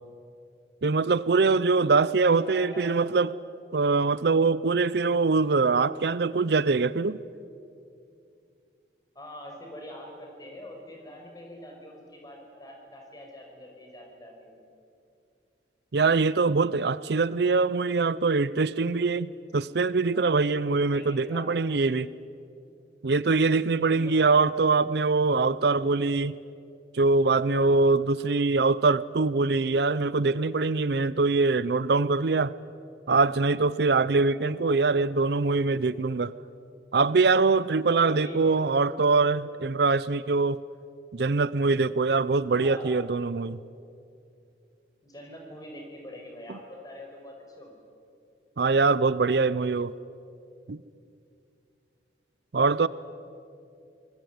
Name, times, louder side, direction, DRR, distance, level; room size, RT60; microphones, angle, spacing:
voice 1, 0.8-3.3 3.7-7.2 15.9-22.1 23.0-26.4 26.9-32.5 33.1-36.3 36.9-40.6 41.1-43.6 48.6-49.9 50.7-50.8 52.5-52.9, right 4 dB, 60° right, 18 dB, 0.5 m, -23 dB
voice 2, 2.2-3.0 9.2-14.6 20.1-20.4 20.7-21.5 23.7-24.4 24.6-24.8 34.5-34.8 38.0-38.5 42.5-42.9 45.0-47.8, equal, 20° left, 1 dB, 5.4 m, -44 dB
26.5 x 20.0 x 9.4 m, 2.5 s
head